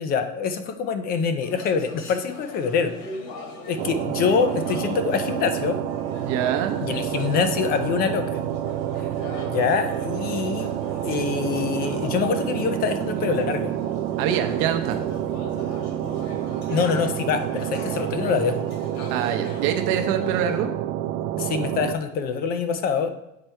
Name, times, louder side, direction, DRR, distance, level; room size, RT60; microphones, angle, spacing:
voice 1, 0.0-2.9 3.7-5.8 6.8-8.3 9.5-10.7 11.0-13.7 16.7-18.6 21.4-23.1, left 6 dB, 25° left, 9 dB, 0.4 m, -25 dB
sound 1, 1.4-20.6, left 3 dB, 55° left, 1.6 m, -41 dB
sound 2, 3.8-21.9, right 11 dB, 75° right, 0.6 m, -28 dB
voice 2, 6.2-6.8 14.2-15.0 19.1-20.7, right 9 dB, 45° right, 6 dB, 0.8 m, -24 dB
7.7 x 3.4 x 4.3 m, 0.86 s
supercardioid pair, 145°, 39 cm